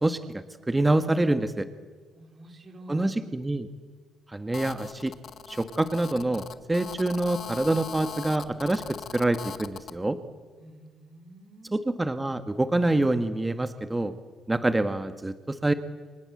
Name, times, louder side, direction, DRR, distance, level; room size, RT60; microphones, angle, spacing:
voice 1, 0.0-1.7 2.9-3.7 4.3-5.1 5.5-8.8 9.1-10.2 11.7-14.1 14.5-15.7, right 2 dB, 15° right, 10 dB, 1.5 m, -26 dB
voice 2, 2.2-3.1 10.6-11.8, right 1 dB, 40° right, 6 dB, 4.6 m, -48 dB
Telephone, 4.5-9.9, left 8 dB, 60° left, 1.7 m, -40 dB
28.5 x 25.0 x 7.9 m, 1.5 s
cardioid pair, 90°, 0 cm